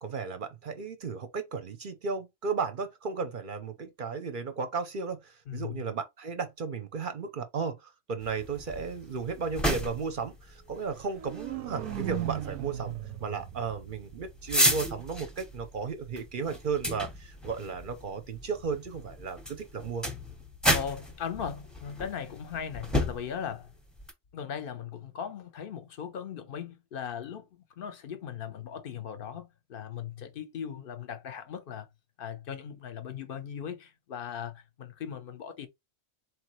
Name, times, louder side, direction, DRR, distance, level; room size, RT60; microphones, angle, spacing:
voice 1, 0.0-12.9 13.2-20.0, right 5 dB, 50° right, 0.7 m, -34 dB
voice 2, 5.5-5.8 20.7-23.7 24.3-27.5 27.8-31.9 32.2-35.7, left 8 dB, 50° left, 0.8 m, -38 dB
sound 1, 8.2-24.1, equal, ahead, 0.7 m, -33 dB
sound 2, 10.9-14.9, right 12 dB, 85° right, 1.0 m, -38 dB
4.1 x 3.2 x 3.0 m
omnidirectional pair, 1.4 m